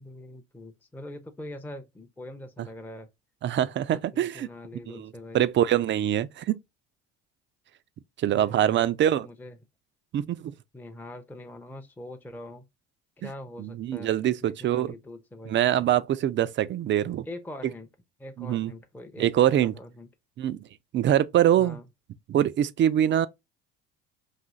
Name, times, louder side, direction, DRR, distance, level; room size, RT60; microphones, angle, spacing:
voice 1, 0.0-3.1 4.1-5.5 8.3-8.9 9.2-9.6 10.7-12.7 13.2-14.1 14.4-15.6 17.2-17.9 18.2-19.3 19.6-20.1 21.6-21.8, left 1 dB, 5° left, 0.6 m, -43 dB
voice 2, 3.4-4.5 4.9-5.1 5.3-6.6 8.2-9.3 10.1-10.5 13.2-13.3 13.6-14.9 15.5-17.2 18.4-18.7 19.2-19.7 20.4-20.6 20.9-21.8 22.3-23.3, right 11 dB, 35° right, 0.4 m, -24 dB
4.1 x 2.7 x 2.3 m
hypercardioid pair, 65°, 32 cm